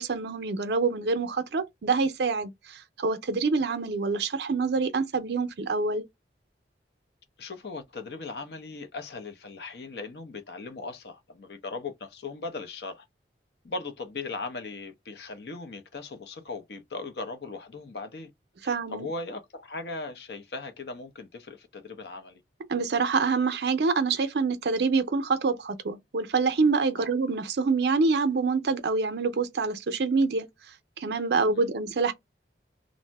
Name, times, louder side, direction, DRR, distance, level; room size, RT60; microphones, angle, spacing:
voice 1, 0.0-6.0 18.6-19.1 22.7-30.5 31.0-32.1, right 4 dB, 65° right, 0.5 m, -26 dB
voice 2, 7.4-13.0 13.6-18.3 18.6-22.4 27.0-27.1 31.4-31.7, left 3 dB, 60° left, 0.6 m, -38 dB
2.6 x 2.0 x 3.2 m
head